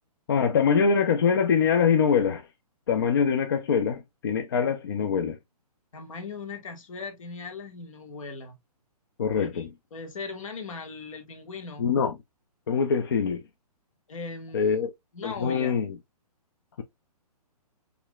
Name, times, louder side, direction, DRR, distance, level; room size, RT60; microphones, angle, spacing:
voice 1, 0.3-2.4 2.9-5.4 9.2-9.7 11.8-12.2 12.7-13.4 14.5-14.9 15.2-15.9, left 6 dB, 35° left, 0.6 m, -24 dB
voice 2, 5.9-8.6 9.4-11.9 14.1-14.8 15.1-15.8, left 4 dB, 55° left, 1.8 m, -39 dB
6.5 x 3.4 x 2.3 m
hypercardioid pair, 170°, 20 cm